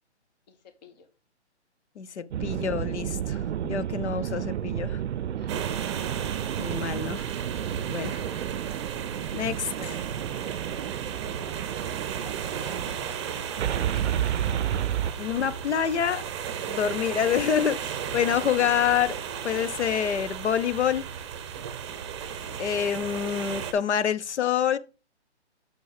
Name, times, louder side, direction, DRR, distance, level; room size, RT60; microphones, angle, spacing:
voice 1, 0.5-1.1 5.3-5.9 7.5-8.5 9.8-10.0 10.4-11.0 12.2-13.3 13.6-14.5, left 5 dB, 35° left, 1.5 m, -51 dB
voice 2, 2.0-5.0 6.6-7.2 7.9-8.2 9.3-9.7 15.2-16.2 16.7-19.2 19.4-21.0 22.6-24.8, left 8 dB, 75° left, 0.9 m, -27 dB
sound 1, 2.3-13.0 13.6-15.1, right 10 dB, 75° right, 0.5 m, -31 dB
sound 2, 5.5-23.7, right 8 dB, 25° right, 0.8 m, -35 dB
6.4 x 5.4 x 4.9 m
hypercardioid pair, 155°, 35 cm